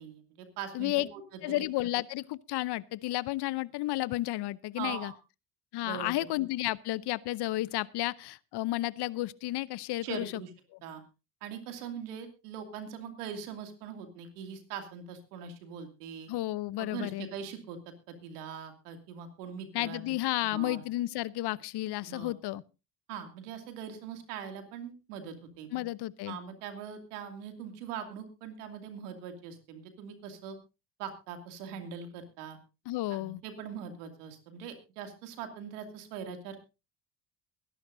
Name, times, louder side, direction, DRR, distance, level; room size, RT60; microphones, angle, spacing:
voice 1, 0.0-1.6 4.8-5.2 5.8-6.1 10.0-10.5 10.8-11.0 11.4-16.3 16.8-17.8 18.1-20.8 22.0-22.3 23.1-25.8 26.3-30.6 31.0-32.6 33.1-36.6, right 7 dB, 85° right, 2.7 m, -42 dB
voice 2, 0.7-1.1 1.4-5.1 5.7-10.3 16.3-17.3 19.7-22.6 25.7-26.4 32.9-33.4, left 17 dB, 60° left, 0.8 m, -32 dB
22.5 x 11.0 x 2.7 m
hypercardioid pair, 65°, 45 cm